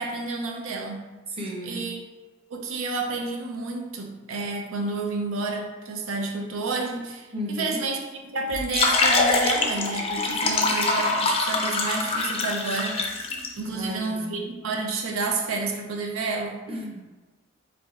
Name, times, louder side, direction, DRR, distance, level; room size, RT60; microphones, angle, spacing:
voice 1, 0.0-1.1 1.7-2.0 2.5-8.0 8.3-13.0 13.6-16.6, right 3 dB, 90° right, 2 dB, 0.5 m, -30 dB
voice 2, 1.3-1.8 7.3-7.8 13.7-14.5 16.7-17.0, equal, 25° right, -2 dB, 0.7 m, -34 dB
sound 1, 8.5-13.5, left 3 dB, 30° left, 0.4 m, -24 dB
4.7 x 3.9 x 2.4 m, 1.2 s
head